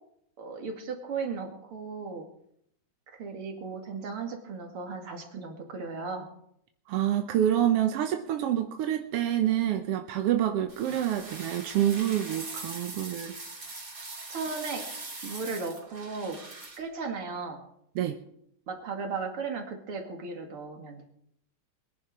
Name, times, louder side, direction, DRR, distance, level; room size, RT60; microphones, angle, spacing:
voice 1, 0.4-2.2 3.2-6.3 14.3-14.8 15.2-16.4 16.8-17.6 18.7-21.0, right 4 dB, 50° right, 3 dB, 2.9 m, -36 dB
voice 2, 6.9-13.3 17.9-18.2, right 11 dB, 65° right, 6 dB, 1.5 m, -27 dB
sound 1, 10.7-16.8, right 3 dB, 30° right, 3.2 m, -41 dB
22.0 x 10.5 x 4.9 m, 0.72 s
omnidirectional pair, 3.5 m